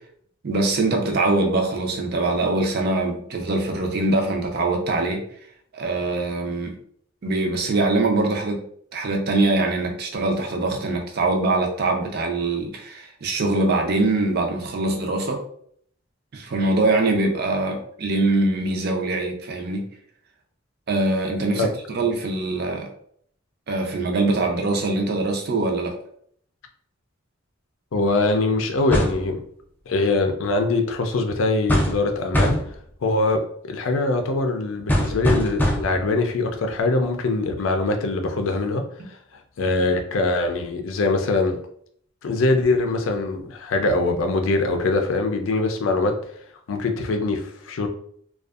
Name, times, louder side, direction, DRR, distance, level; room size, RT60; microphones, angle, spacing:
voice 1, 0.4-5.2 5.7-6.8 7.2-8.6 8.9-15.4 16.3-19.9 20.9-22.9 23.7-26.0, right 2 dB, 50° right, 2 dB, 0.5 m, -23 dB
voice 2, 27.9-29.4 29.9-32.6 33.0-38.8 39.1-39.2 39.6-41.6 42.2-46.1 46.7-47.9, left 2 dB, 80° left, 5 dB, 0.4 m, -22 dB
sound 1, 28.9-29.3 31.7-32.1 32.3-32.8 34.9-36.0, equal, 10° left, 0.3 m, -22 dB
2.6 x 2.3 x 2.3 m, 0.64 s
head